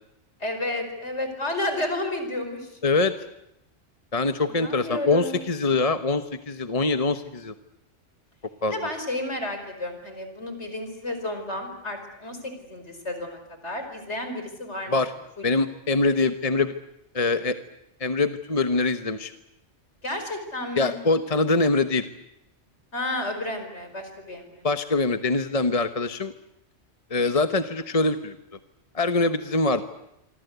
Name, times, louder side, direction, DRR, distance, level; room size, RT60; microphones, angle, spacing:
voice 1, 0.4-2.8 4.5-5.4 8.7-14.9 20.0-21.0 22.9-24.7, left 1 dB, 65° left, 7 dB, 5.3 m, -31 dB
voice 2, 2.8-3.1 4.1-7.5 8.6-8.9 14.9-15.1 15.4-16.7 17.1-17.6 18.0-19.3 20.8-22.1 24.6-26.3 27.1-28.3 28.9-29.8, left 3 dB, 30° left, 9 dB, 1.1 m, -23 dB
27.0 x 25.0 x 8.1 m, 0.83 s
omnidirectional pair, 1.3 m